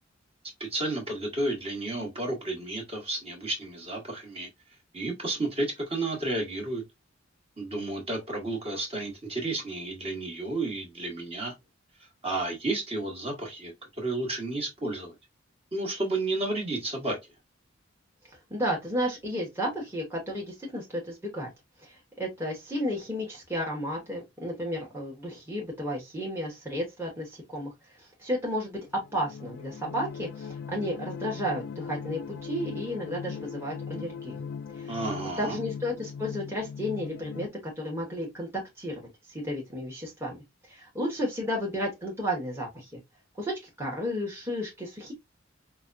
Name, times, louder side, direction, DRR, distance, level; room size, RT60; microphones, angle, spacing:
voice 1, 0.6-4.5 4.9-6.8 7.6-11.5 12.2-15.1 15.7-17.2 34.9-35.6, right 2 dB, 30° right, 1.3 m, -32 dB
voice 2, 18.5-21.5 21.8-27.7 28.0-34.4 34.7-34.9 35.4-39.0 39.3-40.4 40.6-43.0 43.4-45.1, equal, 10° right, 1.1 m, -33 dB
sound 1, 28.9-37.5, left 6 dB, 55° left, 0.3 m, -39 dB
5.1 x 2.2 x 2.5 m
head